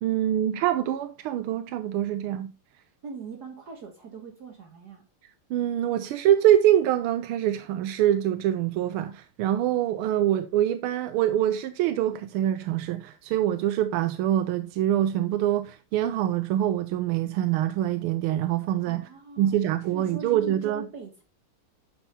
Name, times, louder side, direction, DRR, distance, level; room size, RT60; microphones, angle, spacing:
voice 1, 0.0-2.5 5.5-19.1 19.4-20.8, right 11 dB, 85° right, 1.5 m, -25 dB
voice 2, 3.0-5.0 18.8-21.2, right 4 dB, 50° right, 1.7 m, -42 dB
10.5 x 5.5 x 4.1 m
omnidirectional pair, 2.3 m